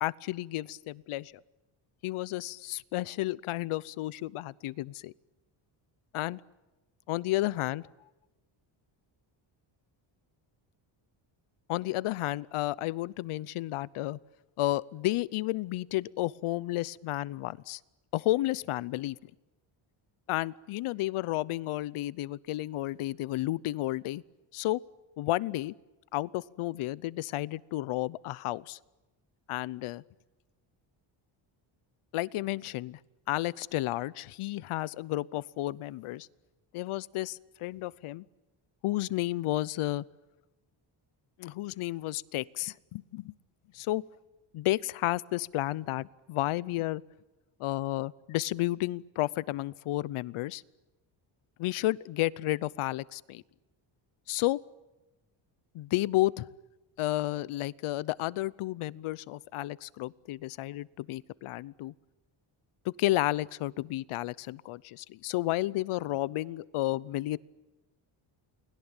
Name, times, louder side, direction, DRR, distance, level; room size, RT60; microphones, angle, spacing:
voice 1, 0.0-1.3 2.0-5.1 6.1-6.4 7.1-7.9 11.7-14.2 14.6-17.8 18.1-19.2 20.3-24.2 24.5-24.8 25.2-25.7 26.1-28.8 29.5-30.0 32.1-33.0 33.3-36.3 36.7-38.2 38.8-40.0 41.4-43.3 43.7-44.0 44.5-47.0 47.6-50.6 51.6-53.4 54.3-54.6 55.7-56.5 57.0-61.9 62.8-67.4, left 16 dB, 90° left, 21 dB, 0.8 m, -32 dB
29.5 x 21.0 x 9.0 m, 1.1 s
cardioid pair, 165°, 49 cm